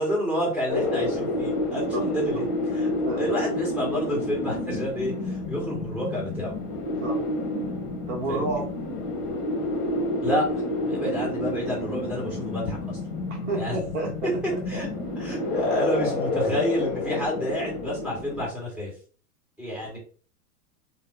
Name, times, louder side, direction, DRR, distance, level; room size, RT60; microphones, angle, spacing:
voice 1, 0.0-2.9 3.2-6.5 8.3-8.7 10.2-10.6 10.9-13.0 13.5-13.8 14.7-14.9 15.2-18.9 19.6-20.0, equal, ahead, -5 dB, 1.6 m, -29 dB
sound 1, 0.7-18.5, left 2 dB, 35° left, 1.1 m, -29 dB
voice 2, 3.0-3.4 7.0-7.2 8.1-8.7 13.3-15.1 19.8-20.0, right 2 dB, 50° right, 1 dB, 0.9 m, -31 dB
3.0 x 2.1 x 3.7 m, 0.40 s
supercardioid pair, 160°, 46 cm